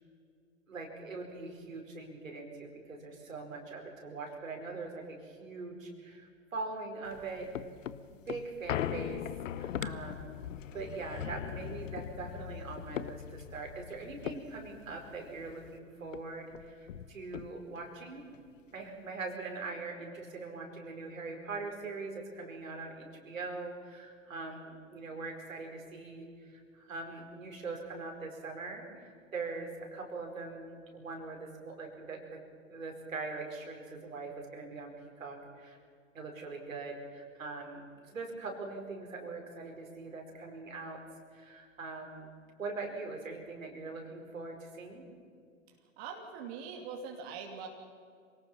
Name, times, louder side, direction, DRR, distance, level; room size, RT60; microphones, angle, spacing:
voice 1, 0.7-7.5 8.3-9.2 9.5-10.4 10.7-18.2 18.7-32.4 32.7-34.9 35.2-35.8 36.1-41.0 41.3-42.3 42.6-45.0, right 3 dB, 85° right, 1 dB, 4.9 m, -42 dB
sound 1, 7.1-15.8 16.1-16.2 16.5-17.9 18.3-18.4, left 10 dB, 75° left, 0.9 m, -40 dB
voice 2, 45.7-47.7, right 6 dB, 55° right, 1 dB, 2.9 m, -43 dB
26.5 x 18.5 x 5.7 m, 2.2 s
hypercardioid pair, 105°, 39 cm